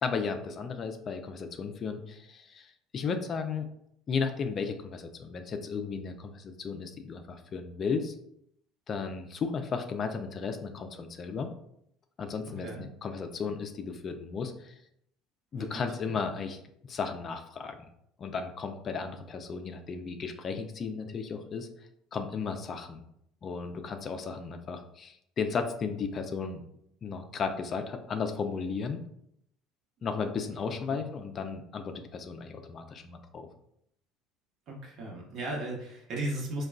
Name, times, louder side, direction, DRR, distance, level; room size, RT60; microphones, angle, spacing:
voice 1, 0.0-3.7 4.1-8.1 8.9-11.5 12.2-12.7 13.0-14.7 15.5-16.6 16.8-17.8 18.2-21.7 22.1-23.0 23.4-26.6 27.0-29.0 30.0-33.5, left 5 dB, 40° left, 6 dB, 0.3 m, -34 dB
voice 2, 15.5-16.1 30.5-31.0 34.7-36.7, right 1 dB, 55° right, -1 dB, 1.0 m, -37 dB
3.6 x 2.2 x 2.3 m, 0.73 s
supercardioid pair, 110°, 0 cm